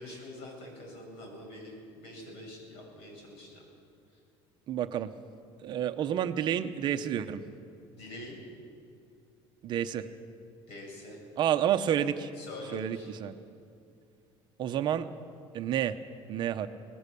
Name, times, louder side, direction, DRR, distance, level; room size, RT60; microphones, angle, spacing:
voice 1, 0.0-3.6 7.9-8.4 10.7-11.2 12.4-13.1, left 1 dB, 65° left, 0 dB, 7.7 m, -45 dB
voice 2, 4.7-5.1 5.6-7.4 9.6-10.1 11.4-12.3 12.7-13.4 14.6-15.1 15.5-16.0 16.3-16.7, right 10 dB, 45° right, 8 dB, 0.8 m, -29 dB
25.0 x 19.0 x 6.9 m, 2.5 s
cardioid pair, 160°, 11 cm